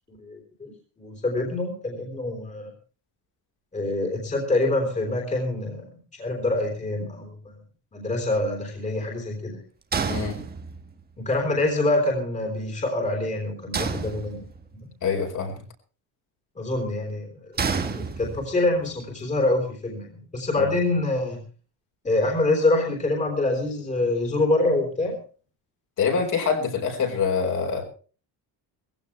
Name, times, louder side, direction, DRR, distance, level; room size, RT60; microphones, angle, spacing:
voice 1, 0.1-0.7 1.0-2.7 3.7-7.6 7.9-9.6 11.2-14.5 14.7-14.9 16.6-17.5 17.8-21.4 22.0-25.1, left 2 dB, 20° left, 2 dB, 3.6 m, -26 dB
sound 1, 9.9-11.0 13.7-14.8 17.6-18.7, right 5 dB, 25° right, 1.4 m, -29 dB
voice 2, 10.1-10.4 15.0-15.6 20.6-20.7 26.0-27.8, left 6 dB, 50° left, 2 dB, 4.7 m, -25 dB
19.5 x 16.0 x 3.3 m, 0.38 s
cardioid pair, 180°, 40 cm